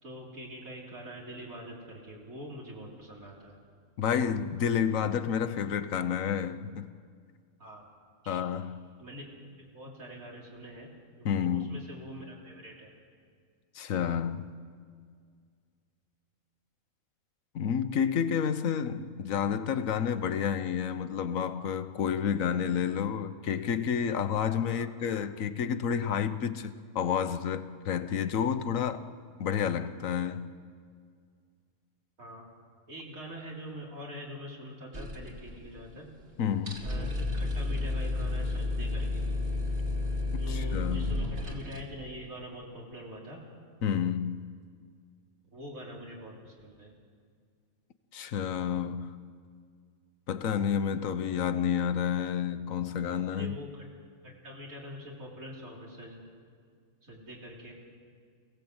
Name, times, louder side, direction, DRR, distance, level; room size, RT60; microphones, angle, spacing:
voice 1, 0.0-3.6 7.6-7.8 8.2-8.4 9.0-9.3 9.6-10.9 11.2-12.9 24.7-24.9 32.2-32.5 32.9-36.1 36.8-39.2 40.2-43.4 45.5-46.9 53.3-53.8 54.2-56.2 57.0-57.7, equal, 80° right, 4.0 m, -44 dB
voice 2, 4.0-6.9 8.3-8.8 11.2-11.8 13.7-14.5 17.5-29.0 29.4-30.4 36.4-36.8 40.5-41.3 43.8-44.5 48.1-49.1 50.3-53.6, left 8 dB, 70° left, 1.3 m, -30 dB
sound 1, 34.9-35.9 36.2-36.3 36.6-41.8, left 2 dB, 45° right, 2.5 m, -32 dB
27.5 x 17.5 x 8.0 m
omnidirectional pair, 1.4 m